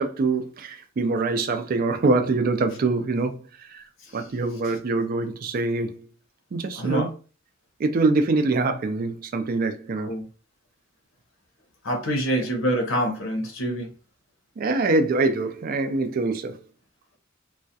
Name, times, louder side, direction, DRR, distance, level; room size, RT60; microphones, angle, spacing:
voice 1, 0.0-3.8 4.1-6.1 6.5-7.1 7.8-10.1 14.6-16.6, right 3 dB, 45° right, 0.3 m, -24 dB
voice 2, 6.8-7.1 10.1-10.3 11.8-13.9, right 1 dB, 85° left, 0.7 m, -25 dB
2.3 x 2.1 x 2.6 m
head